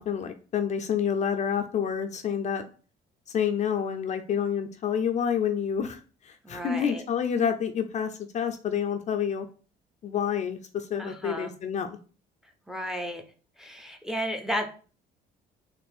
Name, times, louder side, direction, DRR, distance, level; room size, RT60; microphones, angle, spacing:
voice 1, 0.0-2.6 3.3-6.0 6.5-9.5 10.0-11.9, left 8 dB, 45° left, 7 dB, 0.4 m, -28 dB
voice 2, 6.4-7.0 11.0-11.5 12.7-13.2 13.6-14.7, equal, 5° right, 6 dB, 0.6 m, -33 dB
4.2 x 2.5 x 3.4 m, 0.38 s
cardioid pair, 110°, 17 cm